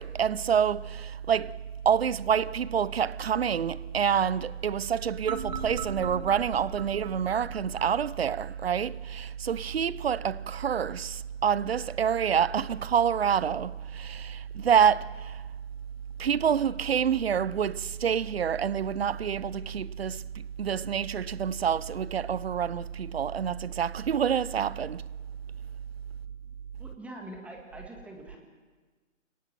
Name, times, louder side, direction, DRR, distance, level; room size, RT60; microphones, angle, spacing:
voice 1, 0.0-1.5 1.8-15.4 16.2-20.2 20.6-25.0, right 8 dB, 50° right, 0.7 m, -27 dB
sound 1, 5.3-8.3, right 6 dB, 35° right, 1.5 m, -39 dB
voice 2, 26.8-28.4, right 1 dB, 5° right, 1.7 m, -44 dB
29.0 x 18.5 x 6.0 m
hypercardioid pair, 155°, 39 cm